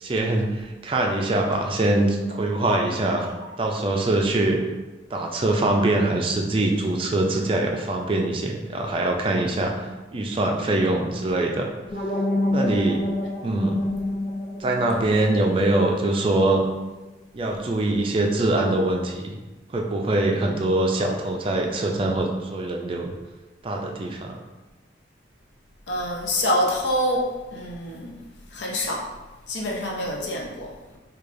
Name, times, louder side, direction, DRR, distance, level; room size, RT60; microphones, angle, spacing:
voice 1, 0.0-3.3 3.6-4.6 5.1-11.7 12.5-13.0 13.4-13.8 14.6-16.6 17.3-19.4 19.7-23.1 23.6-24.4, right 2 dB, 30° right, 1 dB, 0.3 m, -23 dB
sound 1, 11.9-16.8, left 1 dB, 45° left, 1.2 m, -28 dB
voice 2, 25.9-27.3 27.5-28.2 28.5-29.1 29.5-31.0, left 1 dB, 70° left, -1 dB, 0.7 m, -26 dB
4.7 x 2.3 x 2.5 m, 1.2 s
head